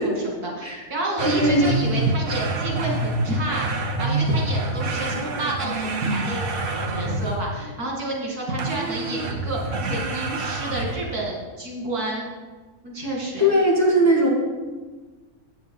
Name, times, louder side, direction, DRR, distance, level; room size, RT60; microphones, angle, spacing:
voice 1, 0.0-12.3 12.8-13.5, right 1 dB, 75° right, -2 dB, 2.8 m, -29 dB
voice 2, 1.2-1.6 13.4-14.3, equal, 10° left, -3 dB, 1.7 m, -19 dB
sound 1, 1.2-7.6 8.6-11.2, right 2 dB, 45° right, 0.9 m, -27 dB
8.8 x 8.1 x 5.5 m, 1.3 s
omnidirectional pair, 1.6 m